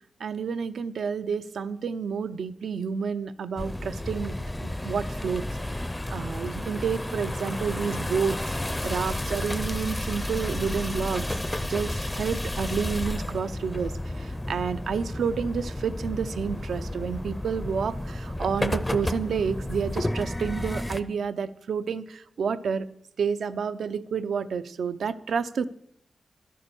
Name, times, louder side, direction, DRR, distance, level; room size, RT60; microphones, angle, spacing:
voice 1, 0.2-4.3 4.6-5.4 6.1-8.6 8.8-11.3 11.7-22.9 23.2-25.7, right 6 dB, 80° right, 11 dB, 0.7 m, -30 dB
sound 1, 3.6-21.0, left 1 dB, 10° left, 0.5 m, -32 dB
12.0 x 8.6 x 7.0 m, 0.71 s
wide cardioid pair, 175°, 0 cm